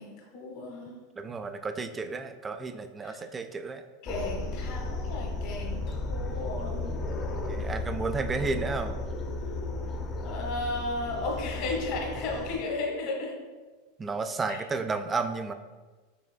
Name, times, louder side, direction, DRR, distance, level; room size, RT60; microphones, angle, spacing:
voice 1, 0.0-1.0 3.0-3.2 4.0-6.8 10.2-13.3 14.5-14.6, left 2 dB, 55° left, 0 dB, 1.2 m, -34 dB
voice 2, 1.2-3.9 7.5-9.0 14.0-15.5, right 4 dB, 20° right, 8 dB, 0.3 m, -32 dB
sound 1, 4.1-12.6, left 2 dB, 30° left, 0.5 m, -34 dB
5.7 x 3.1 x 2.2 m, 1.3 s
supercardioid pair, 120°, 0 cm